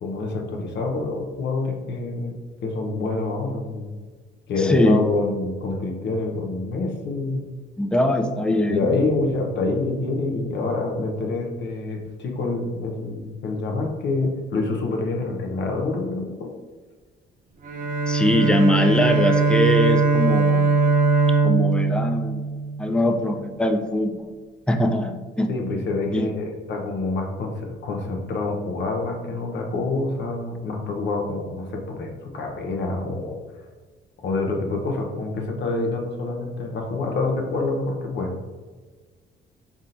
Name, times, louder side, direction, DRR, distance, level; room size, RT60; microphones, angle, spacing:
voice 1, 0.0-2.4 2.6-3.9 4.5-7.5 8.5-16.5 25.5-33.4 34.2-38.3, left 3 dB, 65° left, 1 dB, 0.8 m, -27 dB
voice 2, 4.6-5.0 7.8-8.9 18.1-20.7 21.4-22.4 22.8-24.3 24.7-25.5 26.1-26.3, left 1 dB, 5° left, 4 dB, 0.4 m, -22 dB
Bowed string instrument, 17.6-23.1, right 4 dB, 45° right, 0.6 m, -20 dB
4.2 x 3.6 x 2.5 m, 1.4 s
cardioid pair, 90°, 20 cm